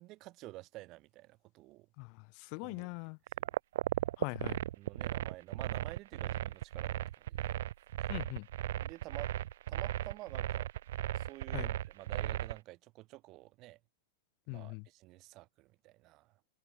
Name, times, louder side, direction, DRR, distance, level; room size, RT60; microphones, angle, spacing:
voice 1, 0.0-1.9 2.6-3.0 3.4-3.5 4.3-4.4 4.8-7.6 8.0-8.1 8.8-9.3 9.7-10.7 11.1-13.8 14.5-16.4, right 19 dB, 35° right, 3.9 m, -50 dB
voice 2, 2.0-3.2 4.2-4.6 8.1-8.5 11.5-11.7 14.5-14.9, left 38 dB, 45° left, 1.2 m, -41 dB
sound 1, 3.3-12.6, right 13 dB, 70° right, 0.5 m, -36 dB
supercardioid pair, 145°, 0 cm